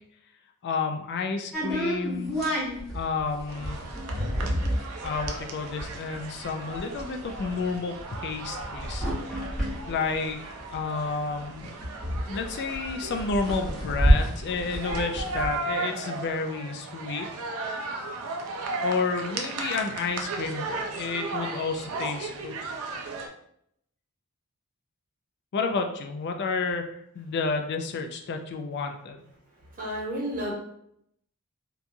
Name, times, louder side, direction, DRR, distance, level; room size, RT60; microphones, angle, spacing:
voice 1, 0.6-2.3 2.9-3.8 5.0-9.1 9.9-10.4 10.7-11.7 12.3-17.3 18.8-22.6 25.5-26.8 27.2-29.2, left 4 dB, 50° left, 5 dB, 0.3 m, -30 dB
sound 1, 1.5-11.0 11.3-11.4 11.6-15.6, equal, ahead, 0.9 m, -29 dB
sound 2, 3.5-23.3, right 3 dB, 65° right, 0.4 m, -36 dB
voice 2, 29.5-30.5, equal, 40° right, -3 dB, 0.8 m, -32 dB
2.9 x 2.3 x 2.5 m, 0.72 s
head